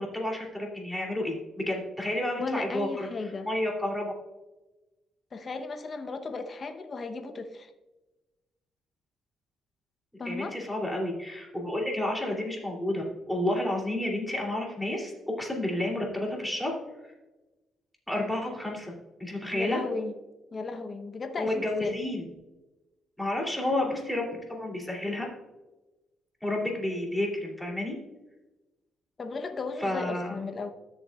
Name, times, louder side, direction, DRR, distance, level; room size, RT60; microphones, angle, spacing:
voice 1, 0.0-3.1 3.4-4.1 10.2-16.7 18.1-18.9 19.2-19.8 21.4-22.2 23.2-25.2 26.4-27.9 29.8-30.4, left 1 dB, 5° left, -2 dB, 2.9 m, -30 dB
voice 2, 2.3-3.5 5.3-7.7 10.2-10.5 19.5-20.1 20.5-22.0 29.2-30.7, left 3 dB, 40° left, 6 dB, 0.9 m, -35 dB
13.0 x 7.1 x 2.4 m, 1.1 s
cardioid pair, 90°, 0 cm